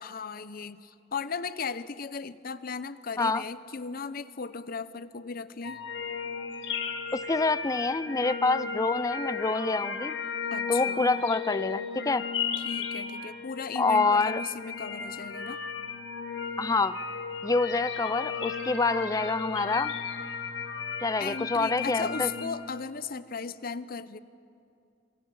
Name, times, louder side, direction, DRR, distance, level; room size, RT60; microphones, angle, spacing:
voice 1, 0.0-5.8 10.5-11.1 12.6-15.6 21.2-24.2, left 5 dB, 50° left, 15 dB, 0.7 m, -36 dB
sound 1, 5.6-22.5, left 6 dB, 70° left, 1.6 m, -35 dB
voice 2, 7.1-10.2 10.7-12.2 13.8-14.4 16.6-17.0 17.4-19.9 21.0-22.3, left 3 dB, 20° left, 16 dB, 0.4 m, -27 dB
28.0 x 23.5 x 5.5 m, 2.5 s
head